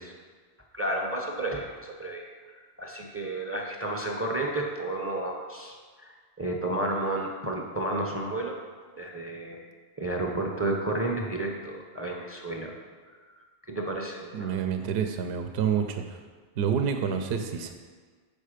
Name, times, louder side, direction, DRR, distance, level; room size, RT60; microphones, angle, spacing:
voice 1, 0.7-2.3 2.8-5.8 6.0-8.6 9.0-9.6 10.0-12.7 13.7-14.6, right 2 dB, 15° right, 1 dB, 0.6 m, -31 dB
voice 2, 14.3-16.2 16.6-17.7, right 7 dB, 70° right, 6 dB, 0.8 m, -28 dB
6.5 x 5.1 x 5.0 m, 1.5 s
omnidirectional pair, 1.1 m